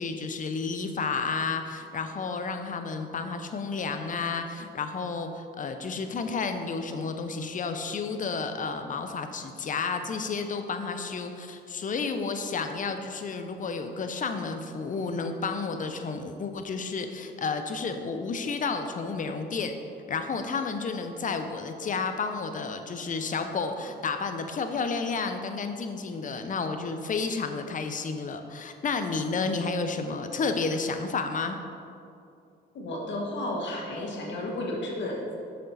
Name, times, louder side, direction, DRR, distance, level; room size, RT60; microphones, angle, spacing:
voice 1, 0.0-19.7 20.1-31.6, left 4 dB, 40° left, 7 dB, 0.6 m, -31 dB
voice 2, 32.7-35.4, left 1 dB, 65° left, -1 dB, 1.4 m, -32 dB
6.5 x 6.5 x 4.0 m, 2.6 s
cardioid pair, 90°, 20 cm